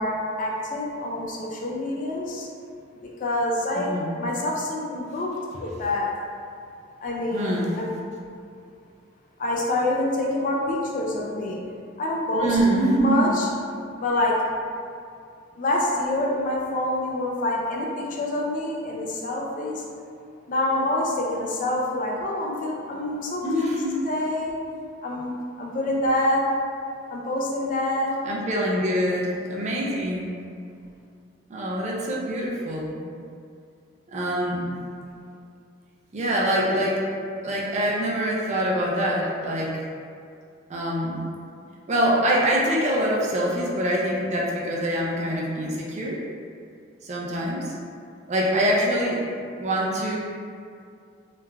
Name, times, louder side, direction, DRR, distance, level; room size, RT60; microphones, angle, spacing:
voice 1, 0.0-2.5 3.2-6.1 7.0-7.9 9.4-11.6 12.0-13.5 14.0-14.4 15.6-19.8 20.5-24.5 25.0-25.3 25.6-26.4 27.1-28.1, left 1 dB, 40° left, -2 dB, 0.3 m, -26 dB
voice 2, 3.8-4.1 7.3-7.8 12.3-13.3 23.4-24.0 28.2-30.3 31.5-33.0 34.1-34.8 36.1-37.0 37.4-39.8 40.7-41.2 41.9-46.2 47.0-47.8 48.3-49.2 49.6-50.2, right 1 dB, 35° right, -4 dB, 0.4 m, -24 dB
3.0 x 2.3 x 2.2 m, 2.4 s
head